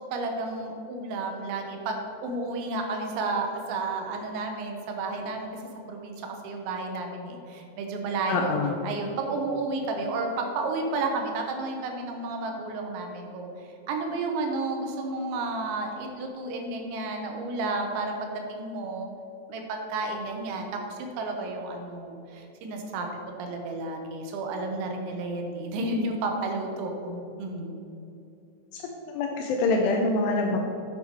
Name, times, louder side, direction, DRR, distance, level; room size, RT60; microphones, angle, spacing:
voice 1, 0.1-5.5 5.9-8.6 8.8-19.1 19.5-23.1 23.4-27.8, right 3 dB, 80° right, 3 dB, 3.2 m, -32 dB
voice 2, 8.3-8.8 28.7-28.9 29.1-30.6, left 3 dB, 80° left, 1 dB, 2.5 m, -25 dB
9.2 x 7.0 x 4.7 m, 2.8 s
omnidirectional pair, 5.5 m